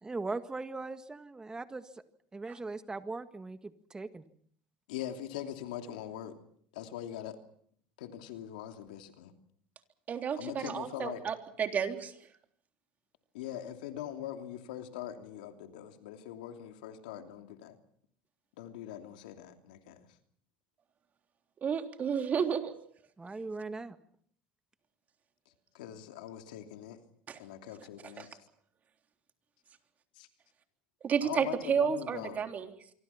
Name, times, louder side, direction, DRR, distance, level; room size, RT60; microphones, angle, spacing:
voice 1, 0.0-1.9 2.3-4.3 23.2-24.0, right 3 dB, 15° right, 10 dB, 1.8 m, -39 dB
voice 2, 4.9-6.4 6.7-7.4 8.0-9.3 10.4-11.2 13.3-17.8 18.6-20.1 25.7-27.0 27.4-28.4 30.1-30.3 31.2-32.4, left 11 dB, 90° left, 6 dB, 2.9 m, -42 dB
voice 3, 10.1-12.1 21.6-22.7 27.3-27.4 28.2-28.3 31.0-32.7, right 7 dB, 35° right, 5 dB, 3.5 m, -31 dB
26.0 x 24.5 x 5.9 m, 0.63 s
supercardioid pair, 105°, 4 cm